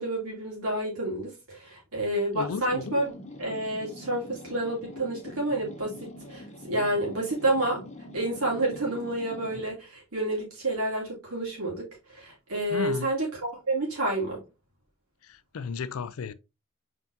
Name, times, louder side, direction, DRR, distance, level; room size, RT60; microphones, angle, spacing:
voice 1, 0.0-3.1 3.4-7.8 8.1-14.4, right 1 dB, 80° right, 2.7 m, -29 dB
voice 2, 2.3-2.9 12.7-13.1 15.2-16.3, left 6 dB, 70° left, 0.4 m, -34 dB
sound 1, 2.7-9.8, left 1 dB, 30° left, 1.0 m, -44 dB
4.5 x 4.4 x 2.7 m
head